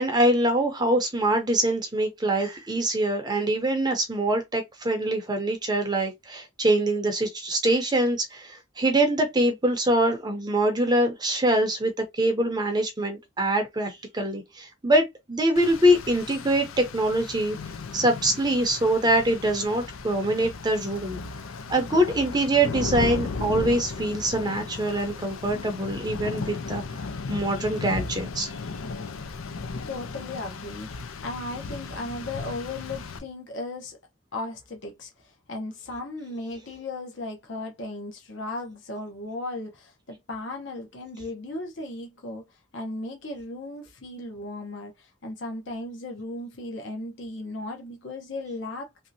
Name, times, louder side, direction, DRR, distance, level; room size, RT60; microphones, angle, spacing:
voice 1, 0.0-17.6 17.9-21.2 21.7-26.8 27.3-28.5, right 1 dB, 20° right, 0.6 m, -24 dB
Rain, 15.6-33.2, left 4 dB, 85° left, 0.5 m, -35 dB
voice 2, 29.9-30.9 31.2-34.0 34.3-42.4 42.7-49.1, left 2 dB, 65° left, 0.8 m, -36 dB
3.1 x 2.7 x 2.6 m
head